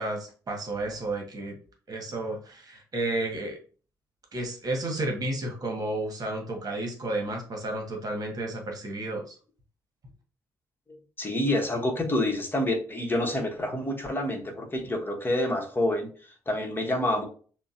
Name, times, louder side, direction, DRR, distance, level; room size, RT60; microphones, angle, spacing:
voice 1, 0.0-1.6 1.9-3.6 4.3-9.4, right 2 dB, 40° right, 2 dB, 1.4 m, -32 dB
voice 2, 11.2-17.3, left 1 dB, 20° left, 1 dB, 1.3 m, -28 dB
6.6 x 2.3 x 2.5 m, 0.40 s
figure-of-eight pair, 40°, 10 cm